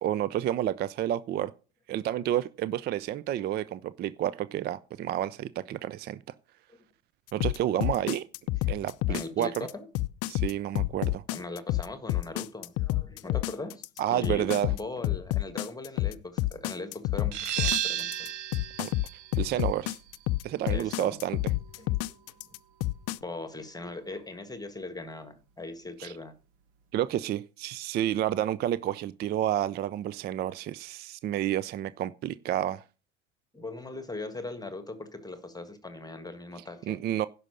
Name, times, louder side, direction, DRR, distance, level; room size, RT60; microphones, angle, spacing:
voice 1, 0.0-1.5 1.9-6.2 7.3-8.2 8.7-9.7 10.3-11.2 14.0-14.7 18.8-18.9 19.3-20.0 20.4-21.4 26.0-26.1 26.9-32.8 36.9-37.3, right 12 dB, 30° right, 0.4 m, -30 dB
sound 1, 7.4-23.2, left 17 dB, 40° left, 0.5 m, -29 dB
voice 2, 9.1-9.9 11.3-13.8 14.1-18.3 20.7-21.2 21.8-22.2 23.2-26.3 33.5-37.0, left 2 dB, 10° left, 1.5 m, -40 dB
sound 2, 17.3-22.7, right 12 dB, 60° right, 1.2 m, -35 dB
11.0 x 5.5 x 6.4 m
hypercardioid pair, 80°, 37 cm